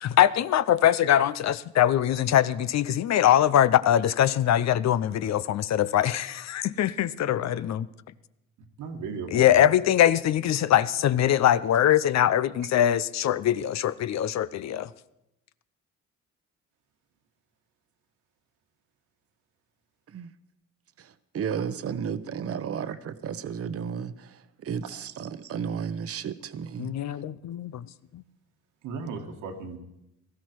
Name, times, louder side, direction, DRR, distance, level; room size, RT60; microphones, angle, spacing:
voice 1, 0.0-7.9 9.3-14.9 26.8-27.9 28.1-28.2, left 11 dB, 60° left, 0.7 m, -22 dB
voice 2, 8.8-9.6 22.9-23.0 28.8-29.8, right 5 dB, 90° right, 2.0 m, -36 dB
voice 3, 21.0-26.9, right 7 dB, 50° right, 0.9 m, -33 dB
18.0 x 14.0 x 4.7 m
cardioid pair, 90°, 30 cm